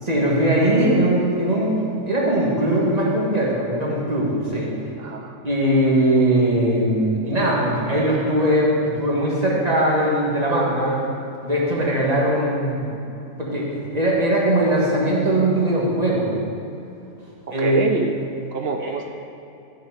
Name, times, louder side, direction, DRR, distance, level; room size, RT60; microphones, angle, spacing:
voice 1, 0.0-4.7 5.4-11.0 11.4-12.9 13.4-16.3 17.5-17.8 18.8-18.9, right 1 dB, 30° right, -4 dB, 1.7 m, -20 dB
voice 2, 5.0-5.4 17.5-18.2 18.5-19.1, right 4 dB, 60° right, 5 dB, 0.7 m, -26 dB
12.5 x 5.7 x 5.0 m, 2.8 s
omnidirectional pair, 1.5 m